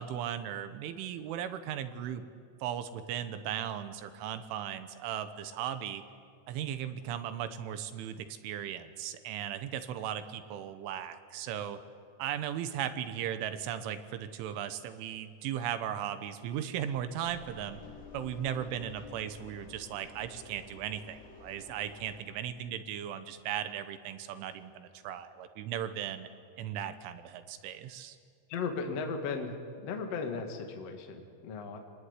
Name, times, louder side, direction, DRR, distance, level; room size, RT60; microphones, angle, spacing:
voice 1, 0.0-2.2 2.6-6.0 6.5-11.8 12.2-17.8 18.1-26.3 26.6-28.2, right 10 dB, 80° right, 11 dB, 3.6 m, -37 dB
Engine, 17.2-22.2, left 4 dB, 70° left, 6.0 m, -51 dB
voice 2, 28.5-31.8, left 4 dB, 45° left, 4 dB, 2.3 m, -36 dB
27.5 x 19.5 x 9.8 m, 2.2 s
omnidirectional pair, 5.6 m